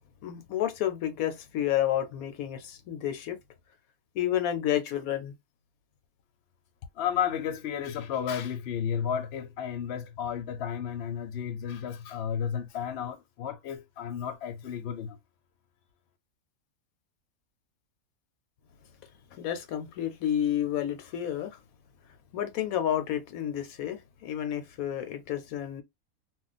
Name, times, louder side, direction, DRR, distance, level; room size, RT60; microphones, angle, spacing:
voice 1, 0.2-3.4 4.1-5.3 19.3-21.6 22.3-25.8, left 11 dB, 80° left, 1.0 m, -30 dB
voice 2, 6.9-15.2, left 8 dB, 55° left, 0.8 m, -32 dB
2.4 x 2.2 x 4.0 m
omnidirectional pair, 1.5 m